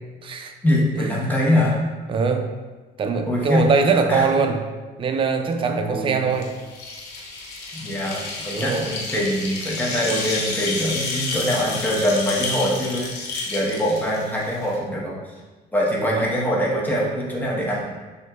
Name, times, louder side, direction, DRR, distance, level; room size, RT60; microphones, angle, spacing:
voice 1, 0.0-0.5 1.0-1.3 2.1-2.5 3.0-4.6 5.0-6.5 8.5-8.9, right 5 dB, 30° right, 5 dB, 0.4 m, -22 dB
voice 2, 0.6-1.8 3.3-3.7 4.1-4.3 5.8-6.2 7.7-15.4 15.7-17.8, equal, 10° left, -4 dB, 1.1 m, -23 dB
sound 1, 6.3-14.8, left 3 dB, 85° left, 0.8 m, -30 dB
6.1 x 2.7 x 2.4 m, 1.3 s
cardioid pair, 110°, 17 cm